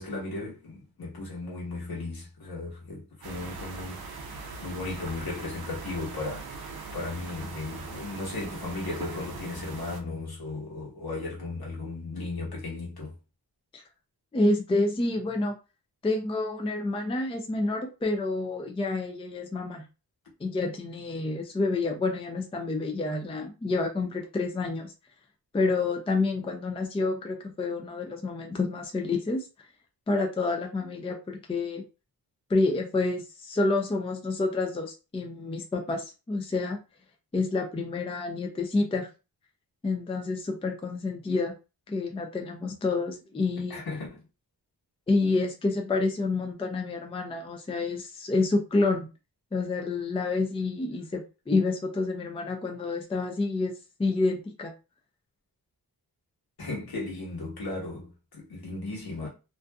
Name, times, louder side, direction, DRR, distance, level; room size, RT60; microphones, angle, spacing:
voice 1, 0.0-6.7 6.9-13.1 43.7-44.2 56.6-59.3, left 2 dB, 70° left, 1.2 m, -36 dB
sound 1, 3.2-10.0, right 4 dB, 70° right, 0.5 m, -41 dB
voice 2, 14.3-15.6 16.0-19.9 20.4-24.9 25.5-29.4 30.1-31.8 32.5-36.8 37.3-39.1 39.8-41.5 41.9-43.8 45.1-49.1 49.5-54.7, left 3 dB, 15° left, 0.4 m, -28 dB
2.6 x 2.4 x 2.2 m
wide cardioid pair, 135°, 39 cm